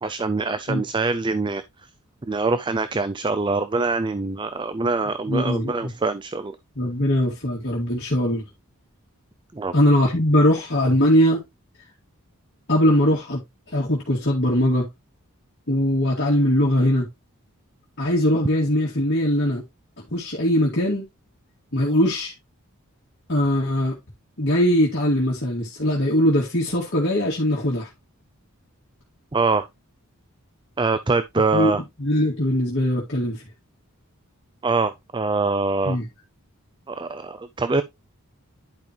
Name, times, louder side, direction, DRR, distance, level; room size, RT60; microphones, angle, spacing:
voice 1, 0.0-1.6 2.3-6.6 9.5-9.7 29.3-29.7 30.8-31.8 34.6-36.0 36.9-37.8, right 3 dB, 20° right, 0.4 m, -24 dB
voice 2, 5.3-5.9 6.8-8.4 9.7-11.4 12.7-13.4 13.7-14.9 15.7-17.1 18.0-19.6 20.1-21.0 21.7-22.3 23.3-24.0 24.4-27.9 31.5-31.7 32.0-33.4 35.8-36.1, equal, 50° left, 2.1 m, -21 dB
10.5 x 5.2 x 3.0 m
head